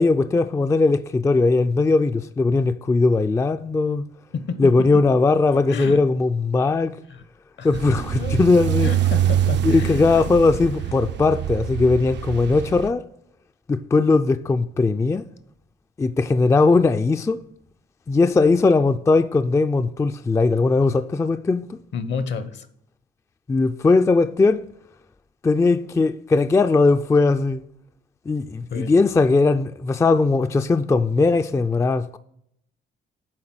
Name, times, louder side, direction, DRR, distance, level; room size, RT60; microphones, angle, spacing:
voice 1, 0.0-4.0 4.6-6.9 7.6-8.9 9.6-13.0 13.7-15.3 16.0-17.4 18.1-21.8 23.5-24.6 25.4-27.6 28.3-32.2, left 3 dB, 15° left, 0.3 m, -19 dB
voice 2, 4.3-5.1 5.4-6.0 7.1-7.2 7.6-7.8 8.2-8.4 8.8-10.2 21.9-22.7 28.7-28.9, left 5 dB, 65° left, 0.9 m, -31 dB
sound 1, 7.7-12.9, right 11 dB, 65° right, 0.5 m, -25 dB
8.8 x 3.6 x 6.1 m
cardioid pair, 90°, 20 cm